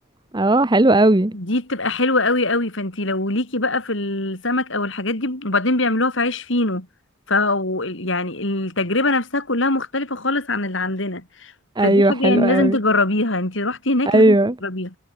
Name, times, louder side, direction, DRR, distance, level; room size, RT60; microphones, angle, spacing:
voice 1, 0.3-1.3 11.8-12.8 14.1-14.5, right 1 dB, 20° right, 0.9 m, -16 dB
voice 2, 1.3-6.9 7.3-11.5 11.8-14.4 14.6-15.0, left 2 dB, 60° left, 4.1 m, -22 dB
head